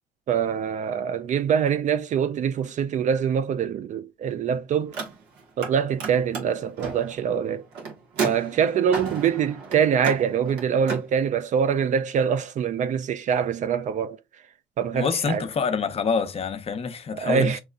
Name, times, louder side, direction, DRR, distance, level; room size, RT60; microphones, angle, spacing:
voice 1, 0.3-5.0 5.6-7.6 8.2-14.2 14.8-15.4 17.1-17.6, right 7 dB, 45° right, 0.4 m, -24 dB
Car, 4.8-5.7 6.0-11.1, right 5 dB, 85° right, 1.4 m, -33 dB
voice 2, 14.9-17.5, left 5 dB, 35° left, 0.7 m, -26 dB
5.3 x 3.1 x 2.4 m
cardioid pair, 110°, 17 cm